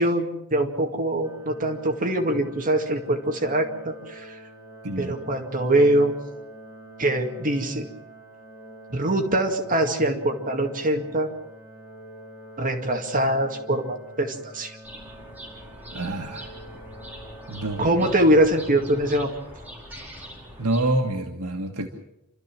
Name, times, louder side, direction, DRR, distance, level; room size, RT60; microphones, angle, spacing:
voice 1, 0.0-4.4 5.0-6.1 7.0-7.9 8.9-11.3 12.6-14.8 17.8-19.3, right 1 dB, 40° right, 3 dB, 2.2 m, -23 dB
sound 1, 1.2-19.1, right 1 dB, 30° left, 5.6 m, -45 dB
voice 2, 4.8-5.2 15.9-16.6 17.5-18.1 20.6-21.9, right 2 dB, 85° right, 2 dB, 1.7 m, -27 dB
sound 2, 14.8-20.9, equal, 10° right, 5.2 m, -43 dB
28.5 x 13.5 x 7.5 m, 0.87 s
head